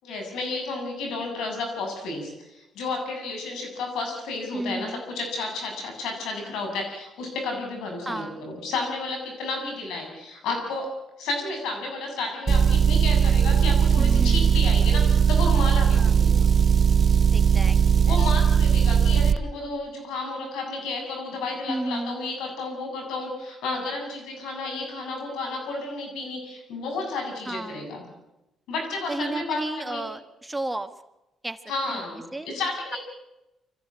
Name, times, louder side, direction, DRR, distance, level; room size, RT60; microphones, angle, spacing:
voice 1, 0.0-10.9 11.2-16.5 18.1-28.0 28.7-30.0 31.7-33.0, left 3 dB, 90° left, 3 dB, 7.7 m, -32 dB
voice 2, 4.5-5.0 8.0-8.4 14.0-14.6 15.9-16.1 17.3-18.2 21.7-22.2 27.5-27.9 29.1-30.9 31.4-31.6 31.9-32.1 32.3-32.5, right 2 dB, 10° right, 8 dB, 1.4 m, -32 dB
Motor vehicle (road) / Engine, 12.5-19.4, right 7 dB, 40° right, 0.8 m, -19 dB
25.0 x 15.0 x 8.7 m, 0.96 s
cardioid pair, 90°, 0 cm